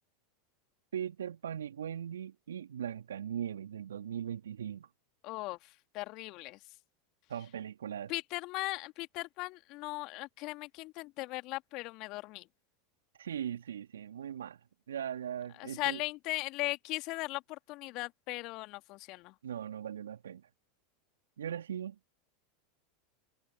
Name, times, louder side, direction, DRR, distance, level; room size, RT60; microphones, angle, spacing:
voice 1, 0.9-4.9 7.3-8.1 13.2-14.6 14.9-16.0 19.4-20.4 21.4-22.0, right 9 dB, 75° right, 3.0 m, -39 dB
voice 2, 5.2-6.6 8.1-12.5 15.6-19.3, left 21 dB, 50° left, 2.5 m, -38 dB
hypercardioid pair, 85°, 0 cm